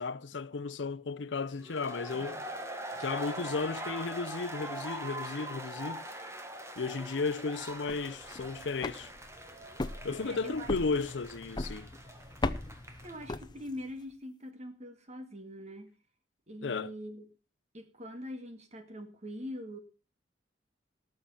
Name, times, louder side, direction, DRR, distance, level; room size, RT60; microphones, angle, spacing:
voice 1, 0.0-2.4 3.0-6.0 6.8-9.1 10.0-11.9 16.6-16.9, left 4 dB, 75° left, 0.6 m, -34 dB
sound 1, 1.6-13.3, right 1 dB, 15° right, 1.4 m, -42 dB
voice 2, 2.1-2.5 10.2-10.7 13.0-15.9 16.5-17.2 17.7-19.8, equal, 35° right, 2.1 m, -43 dB
sound 2, 7.7-14.0, left 2 dB, 25° left, 0.6 m, -39 dB
18.5 x 6.6 x 5.7 m
head